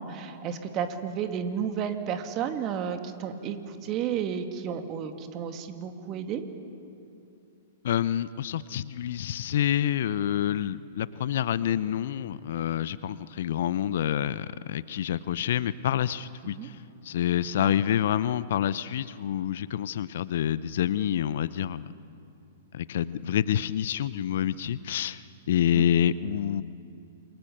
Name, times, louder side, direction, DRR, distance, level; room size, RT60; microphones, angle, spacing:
voice 1, 0.0-6.4 16.6-16.7 17.6-17.7 25.7-25.9, right 8 dB, 35° right, 6 dB, 2.3 m, -32 dB
voice 2, 7.8-16.8 17.0-21.9 22.7-26.6, left 10 dB, 60° left, 17 dB, 0.7 m, -27 dB
28.0 x 23.0 x 6.8 m, 2.7 s
figure-of-eight pair, 110°, 0 cm